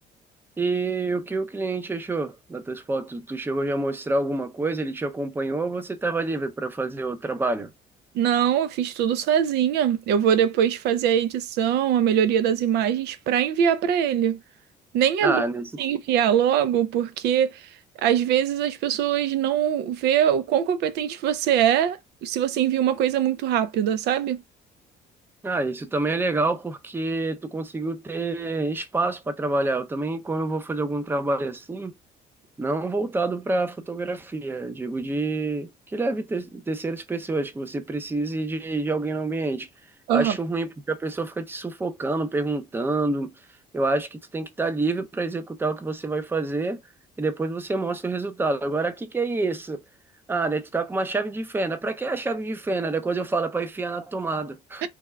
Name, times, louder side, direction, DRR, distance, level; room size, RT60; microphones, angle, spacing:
voice 1, 0.6-7.7 15.2-15.7 25.4-31.9 32.6-39.7 40.1-43.3 43.7-46.8 47.2-49.8 50.3-54.9, right 2 dB, 10° right, 0.5 m, -27 dB
voice 2, 8.1-14.4 14.9-15.4 15.8-17.7 18.0-24.4 40.1-40.4 54.8-54.9, right 9 dB, 80° right, 0.5 m, -22 dB
3.4 x 2.3 x 3.3 m
cardioid pair, 110°, 17 cm